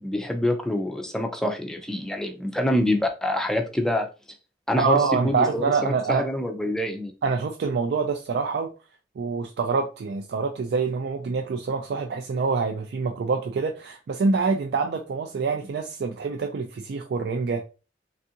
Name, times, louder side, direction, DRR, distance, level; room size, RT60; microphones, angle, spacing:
voice 1, 0.0-4.1 4.7-7.1, left 1 dB, 5° left, 0.4 m, -26 dB
voice 2, 4.8-6.2 7.2-8.7 9.2-17.6, right 4 dB, 65° right, 0.3 m, -26 dB
3.5 x 2.4 x 2.7 m
head